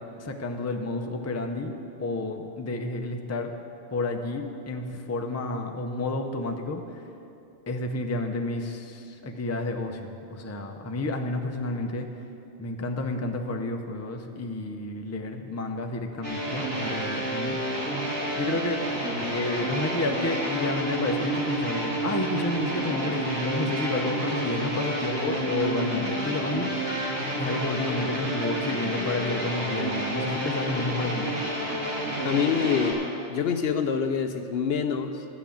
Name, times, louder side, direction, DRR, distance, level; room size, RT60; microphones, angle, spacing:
voice 1, 0.0-3.5 3.9-7.1 7.7-12.2 12.6-17.6 18.4-18.8 19.3-26.8 27.4-31.4, left 2 dB, 20° left, 4 dB, 0.5 m, -30 dB
sound 1, 16.2-32.9, right 1 dB, 90° right, 2.9 m, -30 dB
voice 2, 32.2-33.0 33.3-35.3, left 6 dB, 65° left, 7 dB, 0.8 m, -26 dB
12.5 x 6.0 x 8.5 m, 2.7 s
omnidirectional pair, 1.2 m